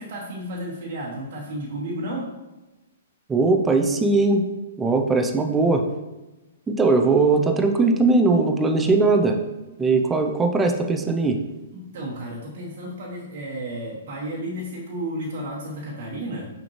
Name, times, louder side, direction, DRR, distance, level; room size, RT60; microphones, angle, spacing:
voice 1, 0.0-2.3 9.9-10.0 11.7-16.5, right 1 dB, 50° right, -4 dB, 1.1 m, -32 dB
voice 2, 3.3-4.4 4.8-5.8 6.7-9.4 9.8-11.4, right 3 dB, 10° right, 4 dB, 0.6 m, -19 dB
6.0 x 5.1 x 3.1 m, 1.1 s
figure-of-eight pair, 115°, 0 cm